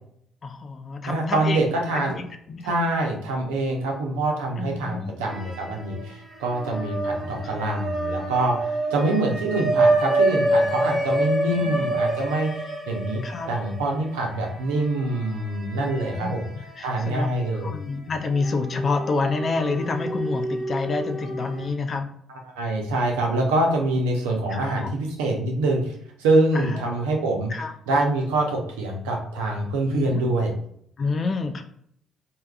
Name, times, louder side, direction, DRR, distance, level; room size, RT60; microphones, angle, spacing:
voice 1, 0.4-1.6 2.0-2.7 4.6-5.1 6.7-7.6 9.2-9.3 11.4-11.8 13.2-13.5 15.7-16.4 16.8-17.3 17.6-22.1 24.5-24.9 26.5-26.8 27.5-27.7 29.9-30.2 31.0-31.6, left 3 dB, 45° left, 6 dB, 0.3 m, -29 dB
voice 2, 1.1-2.2 2.6-12.5 12.9-13.2 13.5-16.5 16.8-17.8 22.6-27.5 27.9-30.5, right 2 dB, 85° right, 1 dB, 0.5 m, -25 dB
sound 1, 5.2-6.0 6.3-16.7 17.1-17.2 18.3-21.7, right 2 dB, 5° right, 1.1 m, -27 dB
3.3 x 2.2 x 2.2 m, 0.67 s
hypercardioid pair, 55°, 0 cm